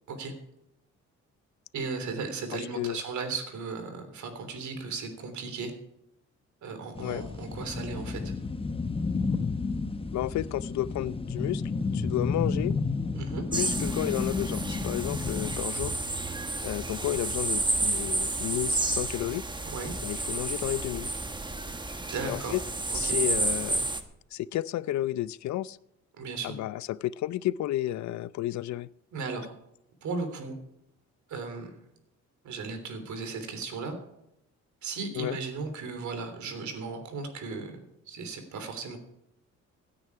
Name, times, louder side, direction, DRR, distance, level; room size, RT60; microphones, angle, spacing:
voice 1, 1.7-5.7 6.6-8.3 13.1-13.4 19.6-19.9 22.1-22.5 22.9-23.2 26.2-26.6 29.1-29.5 30.0-30.5 31.3-31.7 32.4-33.9 34.8-37.8 38.1-39.0, right 4 dB, 70° right, 7 dB, 3.4 m, -36 dB
voice 2, 2.5-3.0 7.0-7.3 10.1-11.6 11.9-12.8 13.5-16.0 16.6-19.4 20.0-21.1 22.3-22.6 22.9-23.9 24.3-25.8 26.4-28.9 35.1-35.4, left 14 dB, 65° left, 20 dB, 0.5 m, -32 dB
sound 1, 7.0-15.6, left 4 dB, 20° left, 0.9 m, -31 dB
sound 2, 13.5-24.0, right 2 dB, 15° right, 1.3 m, -31 dB
16.5 x 9.9 x 4.8 m, 0.82 s
cardioid pair, 90°, 30 cm